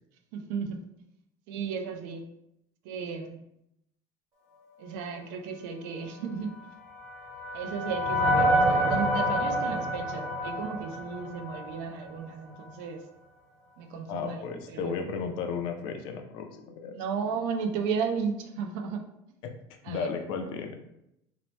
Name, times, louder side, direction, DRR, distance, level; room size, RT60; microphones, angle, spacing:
voice 1, 0.3-0.8 1.5-2.3 2.8-3.4 4.8-6.6 7.5-13.0 13.8-15.0 16.9-19.1 19.8-20.2, right 6 dB, 70° right, 4 dB, 0.4 m, -34 dB
sound 1, 6.5-11.9, equal, 30° right, 0.7 m, -28 dB
voice 2, 14.1-17.0 19.9-20.8, left 6 dB, 50° left, 5 dB, 0.3 m, -34 dB
2.8 x 2.0 x 3.1 m, 0.81 s
cardioid pair, 175°, 10 cm